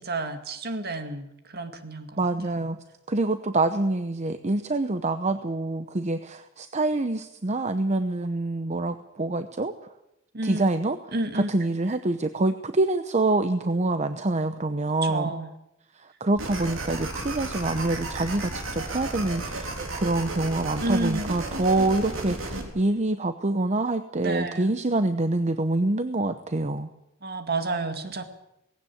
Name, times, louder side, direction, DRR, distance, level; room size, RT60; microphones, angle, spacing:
voice 1, 0.0-2.1 10.3-10.7 11.1-11.5 15.1-15.5 20.8-21.3 24.2-24.7 27.2-28.2, right 2 dB, 50° right, 8 dB, 2.1 m, -30 dB
voice 2, 2.2-2.8 3.1-9.7 10.4-15.3 15.9-26.9, right 2 dB, 35° right, 10 dB, 0.8 m, -26 dB
sound 1, 16.4-22.6, right 2 dB, 80° right, 3.9 m, -33 dB
18.5 x 16.5 x 8.6 m, 0.86 s
head